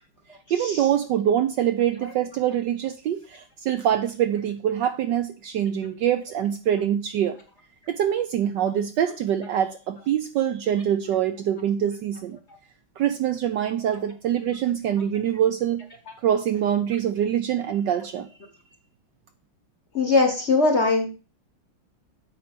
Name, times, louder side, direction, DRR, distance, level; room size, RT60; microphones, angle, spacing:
voice 1, 0.5-7.4 7.9-12.4 13.0-15.9 16.2-18.3, right 10 dB, 75° right, 9 dB, 1.1 m, -24 dB
voice 2, 19.9-21.2, left 3 dB, 40° left, 5 dB, 1.1 m, -20 dB
8.4 x 4.6 x 5.9 m, 0.35 s
omnidirectional pair, 2.4 m